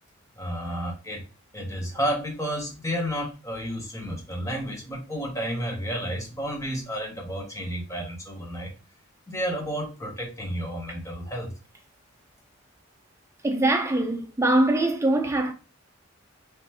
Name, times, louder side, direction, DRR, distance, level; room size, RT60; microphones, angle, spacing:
voice 1, 0.4-1.2 1.5-8.7 9.3-11.5, equal, 15° left, 1.0 m, -31 dB
voice 2, 13.4-15.5, right 1 dB, 15° right, 0.6 m, -22 dB
3.7 x 3.3 x 3.0 m
head